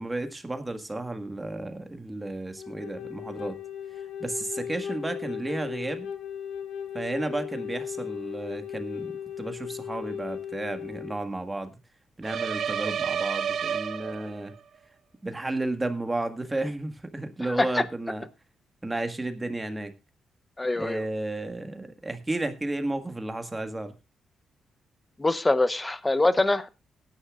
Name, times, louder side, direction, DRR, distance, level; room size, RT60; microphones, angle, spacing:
voice 1, 0.0-3.6 4.2-6.1 6.9-11.7 12.2-14.5 15.2-18.2 18.8-19.9 20.7-23.9, right 2 dB, 15° right, 8 dB, 1.7 m, -33 dB
Wind instrument woodwind instrument, 2.6-11.2, left 8 dB, 75° left, 2.0 m, -37 dB
sound 1, 12.2-14.6, right 8 dB, 65° right, 0.8 m, -30 dB
voice 2, 20.6-21.0 25.2-26.7, left 2 dB, 15° left, 13 dB, 1.0 m, -24 dB
19.5 x 10.5 x 2.4 m, 0.27 s
cardioid pair, 130°, 0 cm